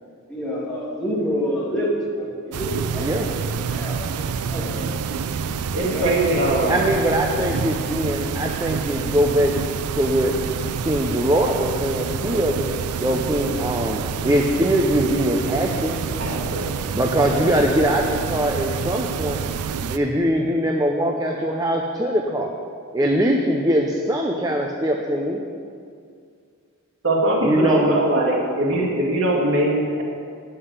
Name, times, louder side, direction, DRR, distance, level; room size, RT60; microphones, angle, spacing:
voice 1, 0.3-3.1 3.4-4.9 5.7-6.2 6.5-6.8, equal, 5° left, -7 dB, 2.3 m, -28 dB
sound 1, 2.5-20.0, right 6 dB, 85° right, 0.4 m, -28 dB
voice 2, 3.0-3.3 6.7-9.5 9.9-10.3 10.8-12.5 13.0-15.9 16.9-19.4 19.8-22.5 22.9-25.4 27.4-27.9, right 1 dB, 15° right, 1 dB, 0.5 m, -22 dB
voice 3, 5.7-6.7 16.2-16.7 27.0-30.0, right 1 dB, 55° right, -4 dB, 2.1 m, -21 dB
9.5 x 5.7 x 8.0 m, 2.3 s
head